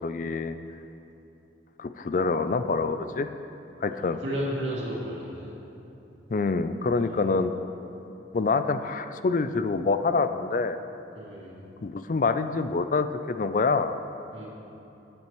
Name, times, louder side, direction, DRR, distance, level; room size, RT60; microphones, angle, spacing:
voice 1, 0.0-0.6 1.8-3.3 3.8-4.2 6.3-7.5 8.3-10.8 11.8-13.9, left 4 dB, 45° left, 10 dB, 0.4 m, -26 dB
voice 2, 3.9-5.5 7.0-7.2 11.1-11.6 14.3-14.5, equal, 85° right, -5 dB, 2.4 m, -33 dB
16.5 x 8.7 x 3.1 m, 2.9 s
head